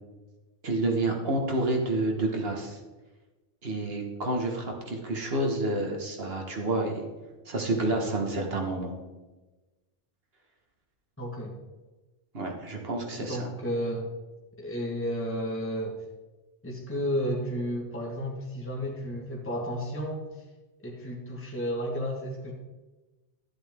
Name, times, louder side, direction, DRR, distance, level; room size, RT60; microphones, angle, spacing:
voice 1, 0.6-2.8 3.6-7.0 7.4-8.9 12.3-13.5, right 2 dB, 60° right, 1 dB, 1.7 m, -29 dB
voice 2, 11.2-11.5 13.2-14.1 14.6-16.0 16.6-20.2 20.8-22.5, equal, 10° left, -2 dB, 1.5 m, -32 dB
12.5 x 7.9 x 3.6 m, 1.2 s
omnidirectional pair, 1.2 m